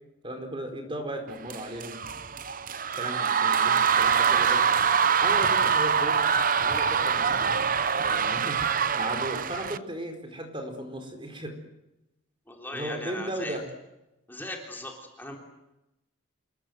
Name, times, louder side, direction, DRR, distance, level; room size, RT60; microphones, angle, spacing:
voice 1, 0.2-2.0 2.9-4.6 5.2-6.2 6.6-11.5 12.7-13.7, right 1 dB, 25° right, 5 dB, 4.4 m, -36 dB
sound 1, 1.5-9.8, right 6 dB, 40° right, 0.8 m, -24 dB
voice 2, 12.5-13.6 14.3-15.4, left 1 dB, 10° left, 1 dB, 3.5 m, -38 dB
27.5 x 21.5 x 7.9 m, 0.93 s
head